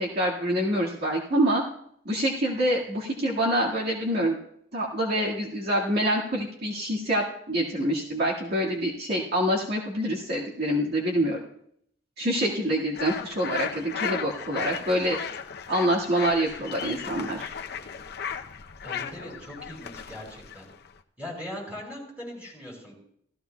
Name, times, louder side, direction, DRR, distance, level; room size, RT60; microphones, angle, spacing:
voice 1, 0.0-1.6 2.1-4.4 4.7-11.4 12.2-15.2 15.7-17.5, right 1 dB, 60° right, -4 dB, 1.9 m, -26 dB
sound 1, 12.9-21.0, left 7 dB, 60° left, 0.7 m, -36 dB
voice 2, 18.8-20.7 21.2-22.9, left 1 dB, 10° right, -3 dB, 5.3 m, -40 dB
16.5 x 14.5 x 2.3 m, 0.70 s
head